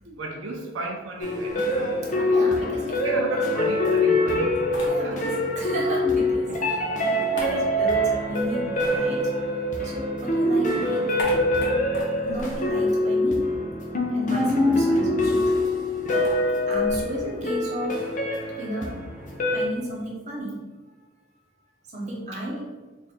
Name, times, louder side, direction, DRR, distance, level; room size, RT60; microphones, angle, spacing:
voice 1, 0.2-2.6 3.0-4.5 5.0-5.2, right 2 dB, 80° right, 0 dB, 0.5 m, -34 dB
sound 1, 1.2-19.7, left 1 dB, 40° left, 0.5 m, -24 dB
sound 2, 1.5-3.6 4.0-5.6 5.9-10.0 10.3-13.6 13.9-14.0 14.3-20.1, left 1 dB, 60° left, 0.8 m, -41 dB
voice 2, 2.3-3.4 4.9-9.2 9.8-11.1 12.2-13.5 14.1-15.7 16.7-18.1 18.6-19.0 19.5-20.6 21.9-22.7, right 1 dB, 35° right, -3 dB, 0.7 m, -33 dB
2.8 x 2.5 x 4.1 m, 1.3 s
head